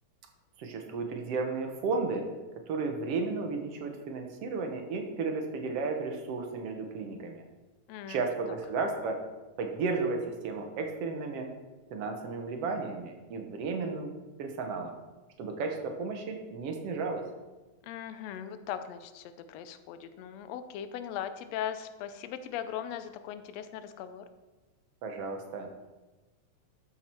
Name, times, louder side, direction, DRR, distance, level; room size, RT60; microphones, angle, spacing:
voice 1, 0.6-2.3 2.7-7.4 8.1-9.2 9.6-11.5 11.9-14.1 14.4-14.9 15.4-17.2 25.0-25.7, right 4 dB, 60° right, 4 dB, 1.9 m, -33 dB
voice 2, 7.9-8.3 17.9-24.2, left 9 dB, 75° left, 10 dB, 1.6 m, -39 dB
13.0 x 6.0 x 4.5 m, 1.2 s
omnidirectional pair, 3.5 m